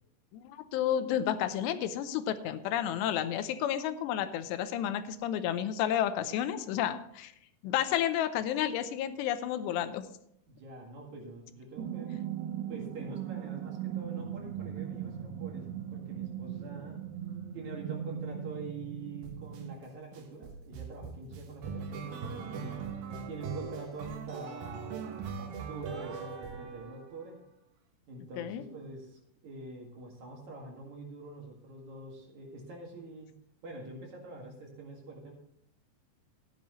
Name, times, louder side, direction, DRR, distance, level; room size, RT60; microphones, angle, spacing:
voice 1, 0.3-7.3 7.6-10.1 28.4-28.6, left 10 dB, 85° left, 11 dB, 2.9 m, -31 dB
voice 2, 10.5-12.2 12.6-17.1 17.5-22.7 23.3-27.4 28.1-33.4 33.6-35.3, right 3 dB, 50° right, -1 dB, 2.8 m, -45 dB
sound 1, 11.8-19.8, right 9 dB, 85° right, 2.5 m, -39 dB
sound 2, 19.2-19.6 20.1-27.3, right 6 dB, 65° right, 2.6 m, -40 dB
14.0 x 10.0 x 3.1 m, 0.73 s
omnidirectional pair, 4.9 m